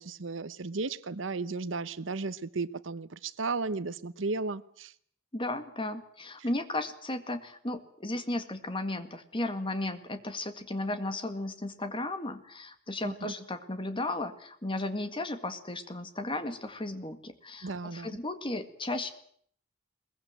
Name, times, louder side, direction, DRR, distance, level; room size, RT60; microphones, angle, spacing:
voice 1, 0.0-4.9 13.0-13.3 17.6-18.2, right 3 dB, 70° right, 0.9 m, -34 dB
voice 2, 5.3-19.1, left 2 dB, 25° left, 2.0 m, -35 dB
21.5 x 20.5 x 7.9 m
head